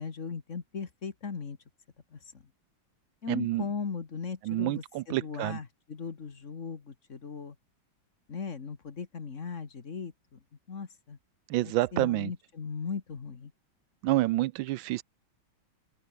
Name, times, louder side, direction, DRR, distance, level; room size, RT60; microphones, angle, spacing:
voice 1, 0.0-1.6 2.1-2.3 3.2-7.6 8.3-10.4 10.7-11.2 11.6-13.5, left 5 dB, 40° left, 1.7 m, -38 dB
voice 2, 3.3-3.6 4.5-5.6 11.5-12.3 14.0-15.0, right 17 dB, 80° right, 1.3 m, -28 dB
open air
omnidirectional pair, 2.1 m